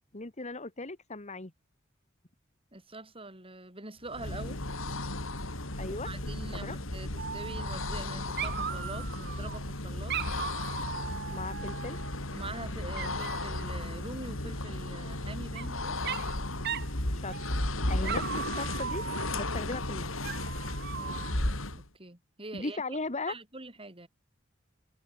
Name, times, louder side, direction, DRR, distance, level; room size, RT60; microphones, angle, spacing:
voice 1, 0.1-1.5 5.8-6.1 6.5-6.8 11.3-12.0 17.1-17.4 17.9-19.0 19.3-20.1 22.5-23.3, left 3 dB, 35° left, 2.0 m, -37 dB
voice 2, 2.7-4.6 5.9-10.2 12.3-16.0 18.0-18.3 20.9-21.3 21.7-23.0 23.3-24.1, right 2 dB, 30° right, 5.9 m, -44 dB
sound 1, 4.1-21.9, left 1 dB, 85° left, 5.2 m, -35 dB
Dog, 7.2-8.1 8.4-9.6 10.1-12.2 13.0-13.6 15.0-15.7 16.0-16.4 16.6-16.9 17.3-17.7 18.0-19.5 20.2-21.5, right 8 dB, 55° right, 1.1 m, -38 dB
head